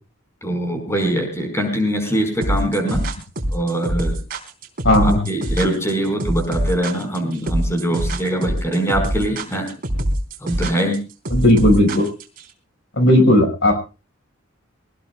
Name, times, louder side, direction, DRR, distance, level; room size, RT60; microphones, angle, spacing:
voice 1, 0.4-3.0 3.5-4.1 5.0-9.7 10.4-11.0, right 1 dB, 15° left, 4 dB, 4.8 m, -22 dB
sound 1, 2.4-12.4, right 1 dB, 45° right, 3.6 m, -24 dB
voice 2, 4.8-5.2 11.3-12.1 13.0-13.8, left 1 dB, 65° left, 7 dB, 5.1 m, -14 dB
23.5 x 19.5 x 2.3 m, 0.33 s
head